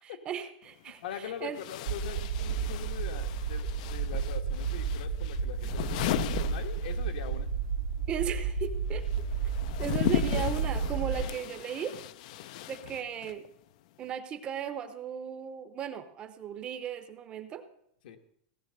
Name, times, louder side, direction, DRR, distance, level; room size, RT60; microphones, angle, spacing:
voice 1, 0.0-1.6 8.1-9.5 9.8-12.0 12.7-13.5 14.0-17.6, right 8 dB, 20° right, 10 dB, 0.7 m, -36 dB
sound 1, 0.6-0.7 1.5-7.4 7.6-13.5, left 14 dB, 50° left, 0.5 m, -36 dB
voice 2, 1.0-7.5 18.0-18.2, left 9 dB, 70° left, 6 dB, 1.5 m, -42 dB
sound 2, 1.9-11.2, right 6 dB, 85° right, 1.2 m, -32 dB
17.0 x 6.9 x 6.6 m, 0.70 s
supercardioid pair, 170°, 5 cm